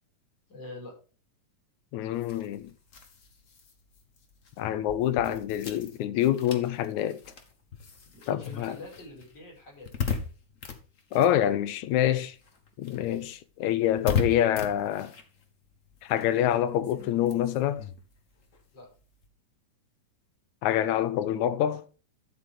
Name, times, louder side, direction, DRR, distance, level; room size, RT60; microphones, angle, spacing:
voice 1, 0.5-0.9 8.1-10.0 18.7-18.9, left 1 dB, 35° left, 6.1 m, -44 dB
voice 2, 1.9-2.7 4.6-7.2 8.3-8.8 11.1-12.4 12.8-15.1 16.0-17.8 20.6-21.8, left 11 dB, 75° left, 2.1 m, -26 dB
sound 1, 2.1-12.0 12.3-19.3, left 6 dB, 55° left, 0.9 m, -38 dB
12.0 x 7.7 x 3.6 m
omnidirectional pair, 3.5 m